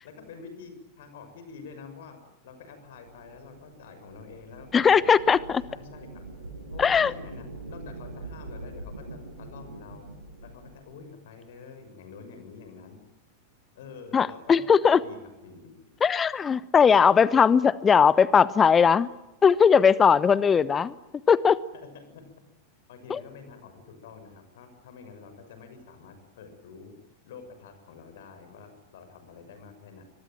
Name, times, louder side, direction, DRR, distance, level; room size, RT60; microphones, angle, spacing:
voice 1, 0.0-2.2 2.4-6.2 6.7-10.1 10.4-13.0 13.7-14.7 15.0-16.0 21.7-22.2 22.9-26.9 27.2-30.0, left 5 dB, 55° left, 6.5 m, -47 dB
sound 1, 2.8-10.9, right 2 dB, 80° right, 5.4 m, -43 dB
voice 2, 4.7-5.6 6.8-7.1 14.1-15.0 16.0-19.1 19.4-20.9 21.3-21.6 23.1-23.2, left 6 dB, 20° left, 1.0 m, -19 dB
24.5 x 22.0 x 9.0 m
figure-of-eight pair, 90°, 0 cm